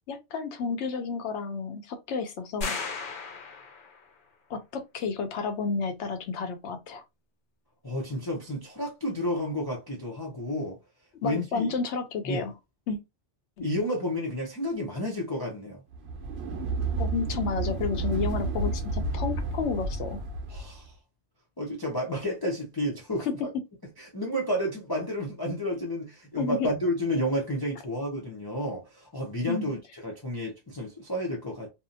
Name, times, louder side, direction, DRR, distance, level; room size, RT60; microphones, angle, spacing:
voice 1, 0.1-2.8 4.5-7.0 11.2-12.5 12.9-13.0 13.6-13.7 17.0-20.2 26.4-26.7 29.5-29.7, left 5 dB, 80° left, 0.9 m, -31 dB
sound 1, 2.6-4.1, left 3 dB, 55° left, 0.8 m, -35 dB
voice 2, 7.8-10.8 11.2-11.7 12.2-12.5 13.6-15.8 20.5-20.9 21.6-23.3 24.0-31.7, equal, 30° left, 0.4 m, -31 dB
sound 2, 15.9-20.8, right 3 dB, 70° right, 0.8 m, -31 dB
2.7 x 2.0 x 2.6 m
omnidirectional pair, 1.2 m